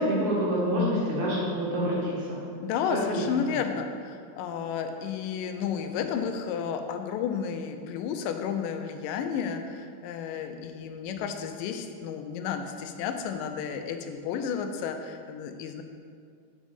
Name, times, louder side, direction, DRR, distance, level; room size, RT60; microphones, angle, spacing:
voice 1, 0.0-2.4 2.9-3.2, equal, 65° right, -6 dB, 3.3 m, -27 dB
voice 2, 2.6-15.8, left 7 dB, 85° left, 6 dB, 2.3 m, -32 dB
7.4 x 6.3 x 5.3 m, 2.2 s
omnidirectional pair, 3.8 m